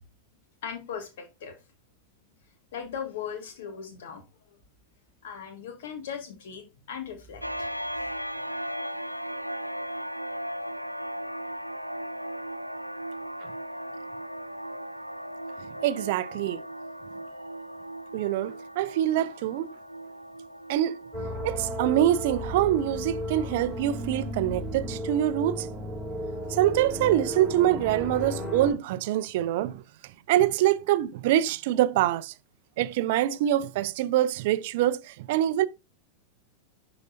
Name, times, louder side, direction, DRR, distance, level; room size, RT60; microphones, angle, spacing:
voice 1, 0.6-1.5 2.7-4.2 5.2-7.7, left 7 dB, 55° left, 1.7 m, -38 dB
sound 1, 7.4-24.6, equal, 90° left, 0.4 m, -38 dB
voice 2, 15.8-16.6 18.1-19.7 20.7-21.0 21.4-25.7 26.5-29.8 30.3-32.3 32.8-35.7, right 13 dB, 50° right, 0.4 m, -25 dB
sound 2, 21.1-28.7, equal, 5° left, 2.3 m, -34 dB
11.5 x 3.9 x 2.6 m
figure-of-eight pair, 90°, 0 cm